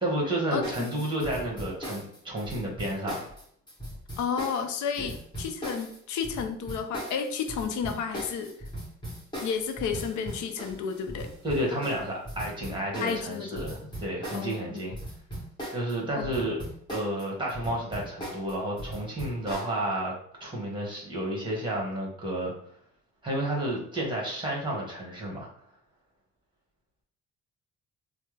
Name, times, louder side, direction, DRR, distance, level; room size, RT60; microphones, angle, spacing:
voice 1, 0.0-3.3 11.4-14.9 15.7-16.6 16.9-20.1 20.4-22.5 23.2-25.5, right 1 dB, 15° right, -3 dB, 1.4 m, -31 dB
voice 2, 0.5-0.9 4.2-8.6 9.4-11.3 13.0-13.7 14.3-14.8 16.2-16.3, left 6 dB, 75° left, 7 dB, 0.6 m, -32 dB
sound 1, 0.6-15.9 16.2-19.7, right 1 dB, 15° left, 1.4 m, -39 dB
3.2 x 2.1 x 3.2 m, 0.64 s
cardioid pair, 90°, 30 cm